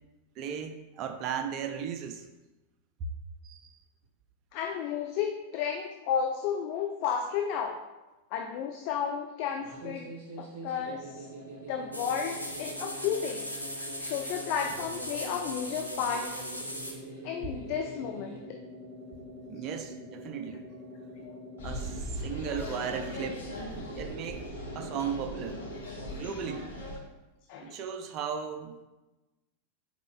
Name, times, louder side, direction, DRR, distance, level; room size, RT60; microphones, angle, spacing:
voice 1, 0.4-2.2 3.4-3.7 19.5-20.7 21.6-23.5 24.0-24.5 24.7-25.6 26.2-26.8 27.6-28.8, right 7 dB, 35° right, 7 dB, 0.4 m, -36 dB
voice 2, 4.5-7.8 8.3-11.3 11.7-13.5 14.0-16.3 17.2-18.4 21.2-21.4 27.5-27.8, left 7 dB, 45° left, 4 dB, 0.3 m, -32 dB
sound 1, 9.5-26.1, right 1 dB, 55° right, 1.4 m, -44 dB
sound 2, 11.9-16.9, equal, 90° right, 0.6 m, -39 dB
sound 3, 21.6-27.0, left 1 dB, 65° left, 0.8 m, -39 dB
5.0 x 4.3 x 2.3 m, 1.1 s
figure-of-eight pair, 90°, 0 cm